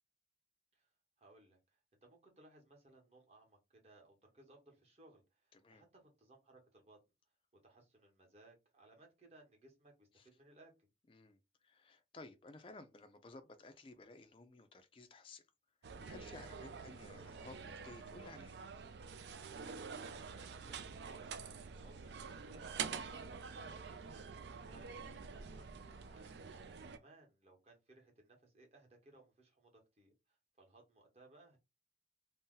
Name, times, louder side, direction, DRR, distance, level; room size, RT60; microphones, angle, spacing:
voice 1, 1.2-7.0 7.6-10.1 10.3-10.9 16.6-16.9 19.6-21.3 21.6-26.5 26.9-31.6, right 2 dB, 35° right, 1.0 m, -64 dB
voice 2, 5.5-5.8 10.2-10.3 11.1-11.4 11.6-15.5 16.1-18.6 23.5-23.7 26.6-26.9, left 2 dB, 30° left, 0.4 m, -56 dB
sound 1, 15.8-27.0, right 6 dB, 70° right, 0.4 m, -47 dB
2.7 x 2.0 x 3.7 m
head